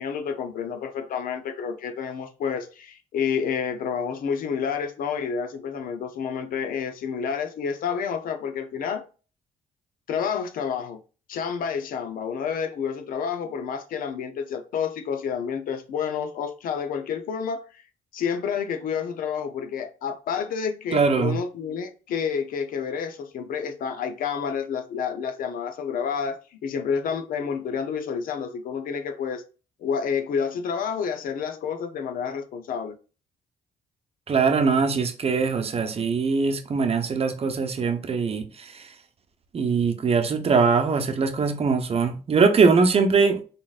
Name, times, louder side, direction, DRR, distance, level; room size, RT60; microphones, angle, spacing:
voice 1, 0.0-9.0 10.1-11.0 11.3-17.8 18.1-29.4 29.8-33.0, left 6 dB, 80° left, 0.7 m, -29 dB
voice 2, 20.9-21.4 34.3-38.9 39.5-43.4, right 5 dB, 45° right, 0.8 m, -22 dB
3.9 x 3.7 x 2.4 m
cardioid pair, 85°, 14 cm